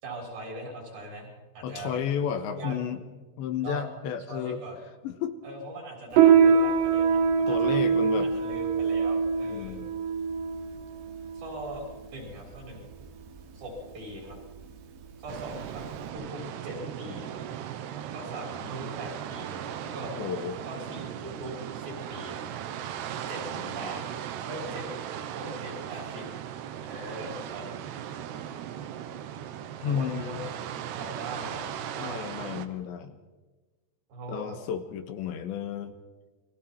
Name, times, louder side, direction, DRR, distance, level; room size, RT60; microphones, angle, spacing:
voice 1, 0.0-2.0 2.6-2.8 3.6-3.9 4.3-4.8 5.4-7.8 8.2-9.8 11.3-11.9 12.1-12.8 13.5-14.4 15.2-15.8 16.1-17.4 18.1-20.1 20.7-22.4 23.3-23.4 23.7-24.0 24.5-24.9 25.3-26.3 26.8-27.7 29.8-30.5 31.0-32.3 34.1-34.6, right 1 dB, 50° right, 0 dB, 7.7 m, -40 dB
voice 2, 1.6-3.0 3.4-4.6 5.0-5.4 7.5-8.3 9.5-9.9 20.2-20.6 23.5-23.9 29.8-30.4 32.0-33.2 34.3-35.9, left 8 dB, 75° left, 8 dB, 3.3 m, -32 dB
Piano, 6.1-16.1, right 6 dB, 90° right, 4.8 m, -24 dB
sound 1, 15.3-32.7, right 10 dB, 70° right, 3.0 m, -37 dB
30.0 x 22.5 x 4.5 m, 1.3 s
omnidirectional pair, 5.4 m